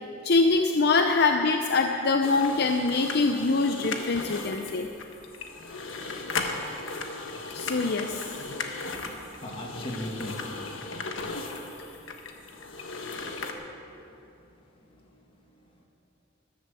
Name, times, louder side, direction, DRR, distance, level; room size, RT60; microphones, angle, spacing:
voice 1, 0.2-4.9 7.5-8.2, left 3 dB, 55° left, 5 dB, 0.6 m, -24 dB
sound 1, 2.2-13.5, left 3 dB, 75° left, 1.3 m, -36 dB
voice 2, 9.0-10.9 15.1-15.2, equal, 30° left, 0 dB, 2.0 m, -38 dB
13.5 x 12.5 x 7.0 m, 2.8 s
head